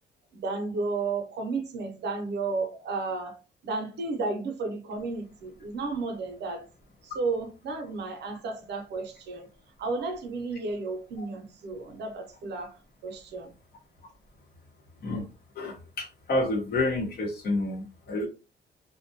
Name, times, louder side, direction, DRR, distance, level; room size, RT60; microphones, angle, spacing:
voice 1, 0.4-6.7 7.0-9.5 9.8-12.7 13.0-13.5, right 3 dB, 65° right, 0.6 m, -33 dB
voice 2, 15.6-18.3, left 2 dB, 55° left, 0.9 m, -29 dB
2.2 x 2.1 x 2.7 m
cardioid pair, 140°, 19 cm